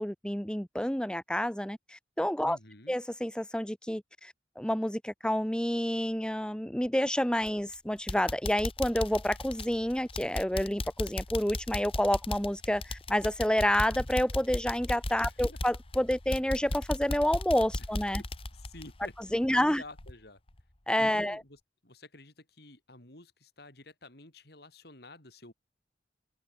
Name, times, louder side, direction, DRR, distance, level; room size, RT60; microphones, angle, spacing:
voice 1, 0.0-2.6 2.9-18.2 19.3-19.8 20.9-21.4, equal, 5° left, 1.0 m, -29 dB
voice 2, 2.4-3.0 15.2-15.6 18.2-20.4 21.0-25.5, left 2 dB, 60° left, 5.3 m, -50 dB
sound 1, 7.4-7.7 8.1-19.7 20.0-20.1 20.6-20.7, left 2 dB, 30° left, 1.4 m, -36 dB
head